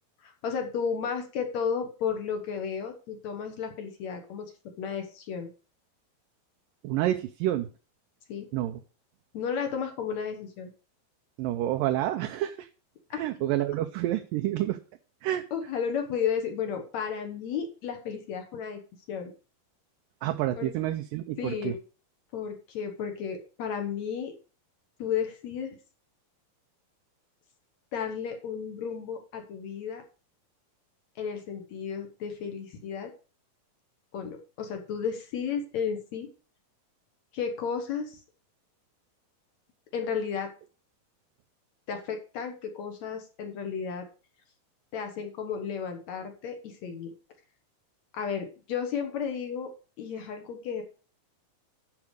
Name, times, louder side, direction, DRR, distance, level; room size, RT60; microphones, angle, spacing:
voice 1, 0.2-4.5 4.8-5.5 8.3-8.5 9.3-10.7 13.1-13.2 15.5-18.8 19.1-19.3 20.6-20.7 21.4-21.8 22.3-24.3 25.0-25.8 27.9-30.0 31.2-33.1 34.1-36.3 37.3-38.2 39.9-40.5 41.9-44.1 44.9-47.1 48.1-49.7 50.0-50.8, left 7 dB, 60° left, 5 dB, 2.1 m, -33 dB
voice 2, 6.8-7.7 8.5-8.8 11.4-12.7 13.1-14.8 15.2-15.4 20.2-21.7, right 13 dB, 75° right, 6 dB, 2.2 m, -28 dB
11.0 x 5.0 x 6.5 m, 0.36 s
omnidirectional pair, 4.3 m